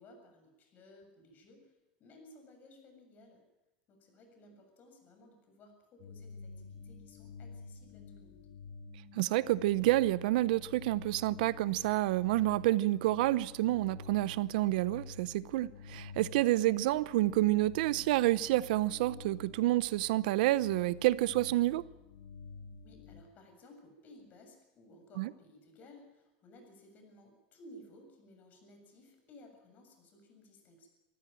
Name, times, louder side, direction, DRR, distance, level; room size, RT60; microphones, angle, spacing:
voice 1, 0.0-3.4 3.9-8.5 22.8-30.9, left 1 dB, 40° left, 7.4 m, -57 dB
sound 1, 6.0-23.2, left 4 dB, 70° left, 2.8 m, -49 dB
voice 2, 9.1-21.8 25.2-25.3, right 16 dB, 75° right, 0.7 m, -29 dB
25.0 x 14.5 x 9.0 m
supercardioid pair, 125°, 5 cm